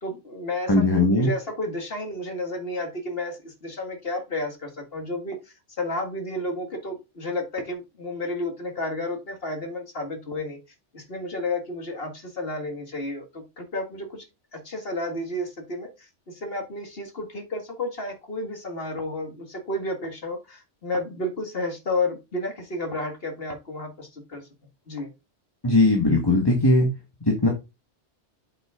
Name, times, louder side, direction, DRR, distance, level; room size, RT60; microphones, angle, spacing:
voice 1, 0.0-10.6 10.9-14.3 14.5-24.5 24.9-25.1, left 2 dB, 55° left, 4 dB, 2.0 m, -32 dB
voice 2, 0.7-1.3 25.6-26.9 27.2-27.5, left 2 dB, 20° left, 0 dB, 1.4 m, -19 dB
7.7 x 5.0 x 3.6 m, 0.25 s
omnidirectional pair, 1.2 m